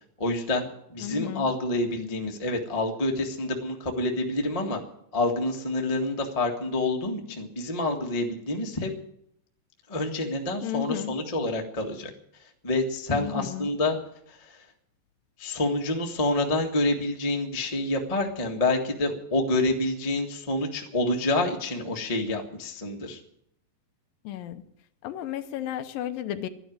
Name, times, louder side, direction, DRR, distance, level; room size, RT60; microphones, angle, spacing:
voice 1, 0.2-4.8 5.1-8.9 9.9-12.1 12.6-14.0 14.3-14.6 15.4-23.2, left 2 dB, 35° left, 1 dB, 0.5 m, -27 dB
voice 2, 1.0-1.5 10.6-11.1 13.1-13.7 24.2-24.6 25.0-26.5, left 12 dB, 85° left, 9 dB, 2.6 m, -33 dB
12.5 x 11.0 x 9.4 m, 0.74 s
omnidirectional pair, 4.0 m